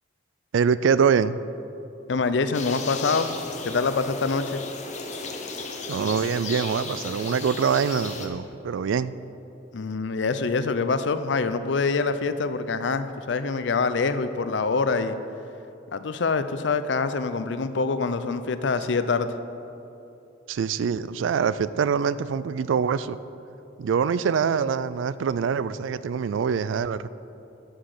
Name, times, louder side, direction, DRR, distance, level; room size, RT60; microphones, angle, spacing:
voice 1, 0.5-1.4 5.9-9.1 20.5-23.2 23.8-27.1, right 6 dB, 90° right, 16 dB, 0.3 m, -24 dB
voice 2, 2.1-3.3 3.6-4.6 9.7-15.2 15.9-19.3, left 4 dB, 70° left, 11 dB, 0.5 m, -25 dB
sound 1, 2.5-8.3, left 4 dB, 40° left, 0.9 m, -35 dB
11.0 x 5.9 x 6.6 m, 2.9 s
head